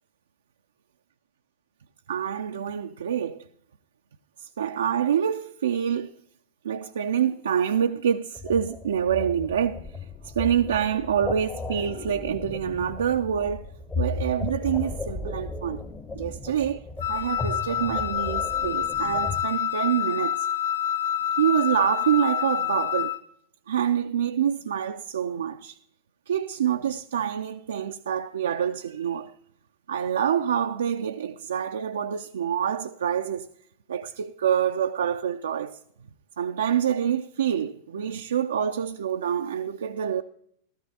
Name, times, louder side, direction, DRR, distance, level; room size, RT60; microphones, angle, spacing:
voice 1, 2.1-3.4 4.4-6.1 6.6-9.9 10.2-13.7 14.0-15.8 16.1-20.5 21.4-23.1 23.7-25.8 26.3-29.3 29.9-33.5 33.9-35.8 36.4-40.2, right 8 dB, 65° right, 0.4 m, -26 dB
sound 1, 8.3-19.4, left 3 dB, 20° left, 0.9 m, -35 dB
Wind instrument woodwind instrument, 17.0-23.2, left 10 dB, 60° left, 0.7 m, -27 dB
15.5 x 13.5 x 2.8 m
figure-of-eight pair, 90°, 0 cm